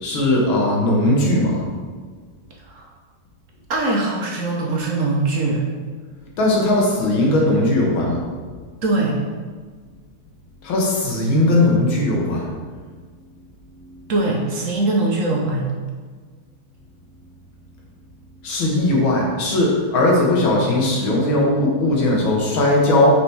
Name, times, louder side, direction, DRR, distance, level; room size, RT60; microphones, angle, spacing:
voice 1, 0.0-1.6 6.4-8.2 10.6-12.5 18.4-23.1, left 1 dB, 80° left, -2 dB, 2.2 m, -18 dB
voice 2, 3.7-5.6 8.8-9.2 14.1-15.7, right 2 dB, 50° right, -1 dB, 1.0 m, -21 dB
6.0 x 5.0 x 4.6 m, 1.6 s
omnidirectional pair, 2.2 m